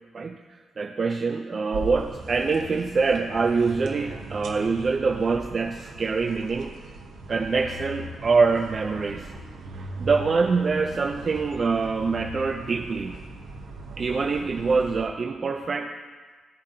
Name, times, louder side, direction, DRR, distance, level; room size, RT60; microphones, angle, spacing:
voice 1, 0.1-6.7 7.3-9.4 10.0-13.2 14.0-15.9, right 4 dB, 35° right, 4 dB, 0.3 m, -25 dB
sound 1, 1.7-15.1, right 2 dB, 85° right, 0.9 m, -39 dB
15.0 x 5.1 x 2.7 m, 1.4 s
wide cardioid pair, 155°, 0 cm